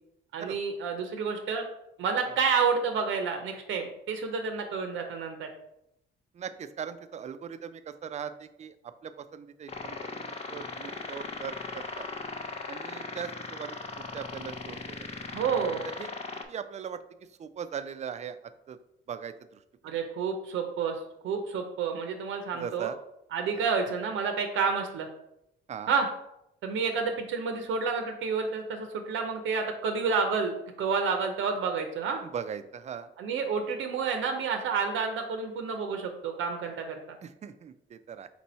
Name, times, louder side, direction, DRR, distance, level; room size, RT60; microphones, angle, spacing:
voice 1, 0.3-1.7 2.0-5.5 15.3-15.8 19.8-21.0 21.2-22.9 23.3-25.1 25.9-26.1 26.6-32.2 33.2-37.0, right 5 dB, 80° right, 4 dB, 0.6 m, -29 dB
voice 2, 6.3-10.0 10.3-12.1 12.7-15.1 15.8-16.1 16.5-18.4 18.7-18.8 19.1-19.6 22.5-23.0 23.5-23.7 25.7-25.9 32.2-33.1 37.2-38.3, right 7 dB, 35° right, 11 dB, 0.4 m, -40 dB
sound 1, 9.7-16.4, left 3 dB, 30° left, 0.5 m, -38 dB
4.5 x 2.7 x 4.3 m, 0.81 s
cardioid pair, 90°, 20 cm